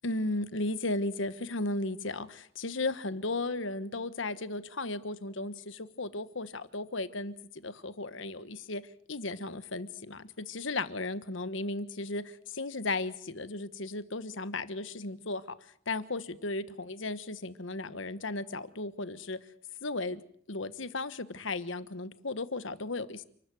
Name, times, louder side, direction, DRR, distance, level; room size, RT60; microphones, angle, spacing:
voice 1, 0.0-7.3 7.6-8.8 9.1-15.4 15.9-19.4 19.8-20.2 20.5-23.2, left 2 dB, 65° left, 13 dB, 1.4 m, -35 dB
29.0 x 13.5 x 9.3 m, 0.63 s
head